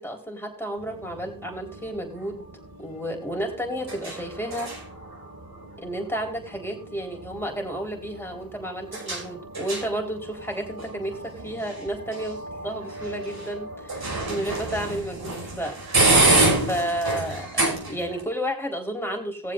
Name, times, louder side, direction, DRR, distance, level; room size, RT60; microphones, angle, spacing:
voice 1, 0.0-2.5 2.8-4.7 5.8-15.7 16.7-19.5, right 1 dB, 5° left, 1 dB, 4.2 m, -31 dB
sound 1, 0.8-18.2, right 2 dB, 55° right, 5.6 m, -29 dB
20.5 x 7.4 x 2.6 m, 0.36 s
cardioid pair, 50°, 45 cm